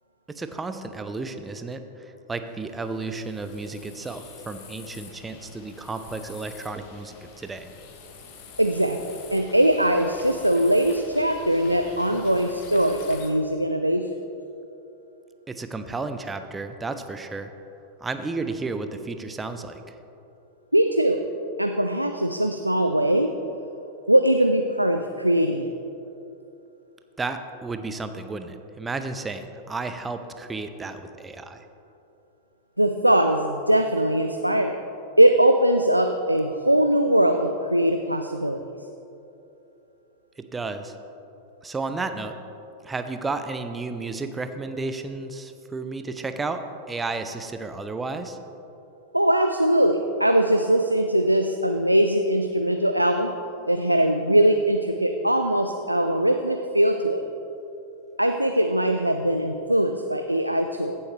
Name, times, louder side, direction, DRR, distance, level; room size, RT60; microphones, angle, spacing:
voice 1, 0.3-7.7 15.5-17.5 18.0-20.0 27.2-31.7 40.4-40.9 41.6-42.4 42.8-48.4, right 3 dB, 15° right, 8 dB, 0.6 m, -32 dB
sound 1, 2.4-13.3, left 5 dB, 45° left, 1.2 m, -46 dB
voice 2, 8.6-14.1 20.7-21.2 21.6-23.3 24.1-25.7 32.8-34.8 35.2-38.6 49.1-53.3 53.7-57.2 58.2-61.0, right 1 dB, 90° right, 5 dB, 0.4 m, -21 dB
15.5 x 7.1 x 3.3 m, 2.9 s
figure-of-eight pair, 90°, 0 cm